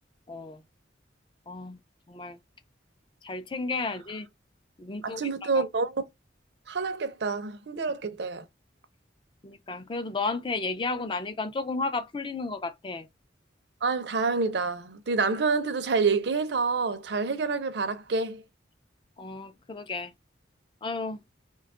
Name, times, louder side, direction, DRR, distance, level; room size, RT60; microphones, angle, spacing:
voice 1, 0.3-0.6 1.5-1.8 2.1-2.4 3.2-4.3 4.8-5.2 5.6-5.7 9.4-13.1 19.2-20.1 20.8-21.2, left 3 dB, 30° left, 0.4 m, -33 dB
voice 2, 5.0-6.1 6.7-8.5 13.8-18.4, right 4 dB, 65° right, 0.5 m, -27 dB
2.9 x 2.3 x 3.6 m
head